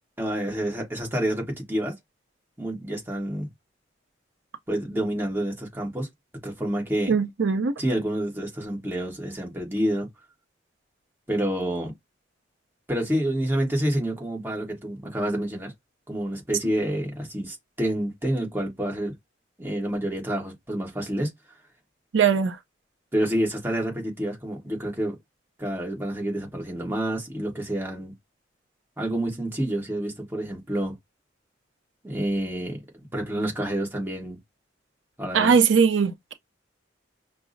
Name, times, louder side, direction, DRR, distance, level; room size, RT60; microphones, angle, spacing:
voice 1, 0.2-1.9 2.6-3.5 4.7-6.1 6.4-7.1 7.8-10.1 11.3-11.9 12.9-15.7 16.1-19.1 19.6-21.3 23.1-25.1 25.6-28.1 29.0-30.9 32.0-34.4 35.2-35.5, right 1 dB, 10° right, 1.2 m, -28 dB
voice 2, 7.1-7.7 22.1-22.6 35.3-36.3, right 6 dB, 90° right, 0.5 m, -20 dB
5.7 x 2.0 x 2.5 m
head